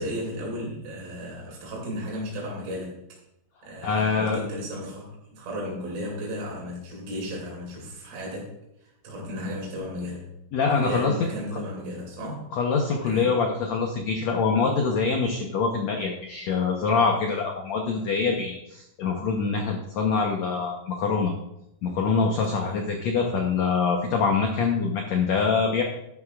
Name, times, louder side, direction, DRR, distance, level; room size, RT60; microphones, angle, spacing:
voice 1, 0.0-3.0 3.6-8.5 9.0-10.3 10.7-12.5 13.0-13.4 22.5-22.9, equal, 70° right, -4 dB, 4.6 m, -34 dB
voice 2, 3.8-4.4 10.5-11.1 12.5-21.3 21.8-25.8, left 5 dB, 85° left, 2 dB, 1.5 m, -24 dB
12.5 x 11.0 x 2.4 m, 0.83 s
omnidirectional pair, 4.6 m